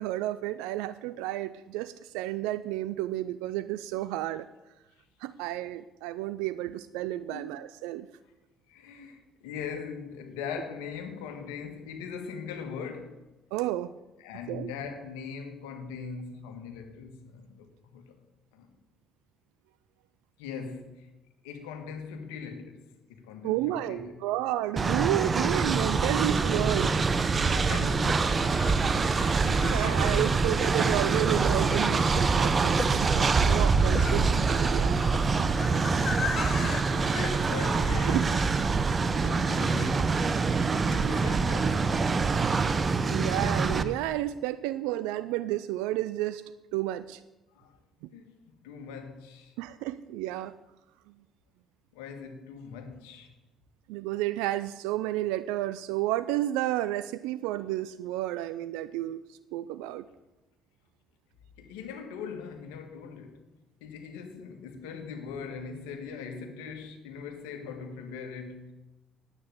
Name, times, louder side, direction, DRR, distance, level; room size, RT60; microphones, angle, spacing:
voice 1, 0.0-4.5 5.2-8.1 13.5-13.9 14.5-14.7 23.4-26.9 29.6-35.0 38.1-38.2 39.2-39.3 43.1-46.4 46.7-47.2 49.6-50.5 53.9-60.0, right 15 dB, 80° right, 0.4 m, -31 dB
voice 2, 8.7-13.2 14.2-18.2 18.5-18.7 20.4-21.1 21.4-24.2 27.5-30.5 36.9-38.6 39.0-42.4 47.5-47.8 48.1-49.5 51.9-53.3 61.6-63.4 63.8-68.7, left 6 dB, 85° left, 1.7 m, -41 dB
Train, 24.8-43.8, right 4 dB, 40° right, 0.9 m, -25 dB
sound 1, 26.8-26.9 27.9-36.8, left 6 dB, 55° left, 1.4 m, -39 dB
9.7 x 8.6 x 8.3 m
hypercardioid pair, 55°, 0 cm